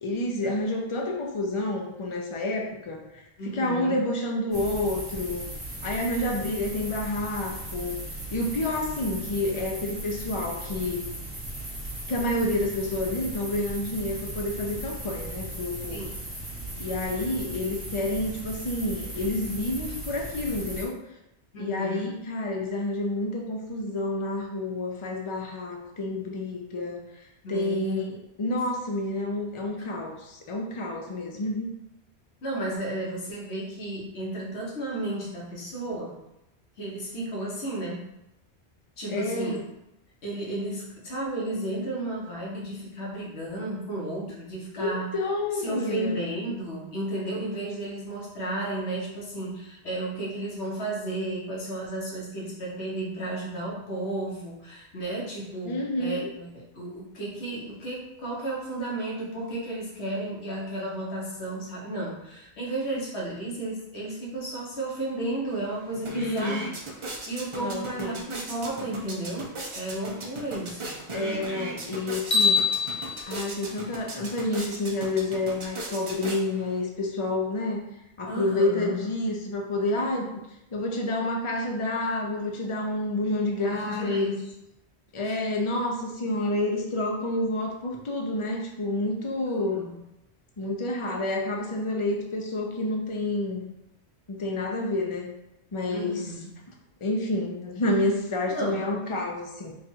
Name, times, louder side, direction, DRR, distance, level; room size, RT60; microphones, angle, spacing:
voice 1, 0.0-3.2 3.5-5.4 5.8-8.0 8.3-11.1 12.1-16.1 16.8-21.0 21.6-31.7 39.1-39.6 44.8-46.2 55.7-56.3 66.1-66.6 67.6-68.3 71.1-72.7 73.3-77.8 78.2-80.4 80.7-84.3 85.1-89.8 90.6-93.6 94.3-95.3 95.7-96.3 97.0-99.7, left 2 dB, 35° left, 0 dB, 0.6 m, -29 dB
voice 2, 3.4-4.0 15.9-16.3 21.5-22.1 27.4-28.1 32.4-36.2 36.8-38.1 39.0-39.7 40.2-45.1 45.5-66.7 67.1-71.0 78.3-79.0 83.6-84.5 85.2-85.4 89.6-90.0 95.9-96.5 98.5-98.8, right 1 dB, 80° left, -4 dB, 1.4 m, -33 dB
sound 1, 4.5-20.8, right 1 dB, 20° right, 1.5 m, -37 dB
sound 2, 65.5-65.6 65.9-76.8, right 2 dB, 35° right, 0.6 m, -38 dB
sound 3, 72.3-74.6, left 5 dB, 50° left, 1.3 m, -26 dB
3.7 x 2.5 x 4.4 m, 0.88 s
omnidirectional pair, 1.1 m